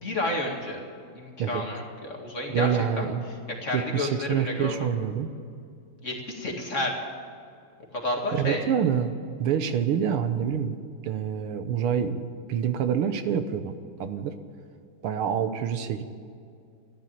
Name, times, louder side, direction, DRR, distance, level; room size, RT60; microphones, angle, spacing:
voice 1, 0.0-0.8 1.1-2.7 3.0-3.1 3.6-4.9 6.0-6.9 8.0-8.6, left 2 dB, 35° left, 0 dB, 2.3 m, -30 dB
voice 2, 2.5-3.2 3.7-5.3 8.3-9.1 9.4-10.8 11.0-12.2 12.5-14.3 15.0-16.0, right 8 dB, 80° right, 10 dB, 1.8 m, -27 dB
13.5 x 11.0 x 8.8 m, 2.3 s
omnidirectional pair, 2.4 m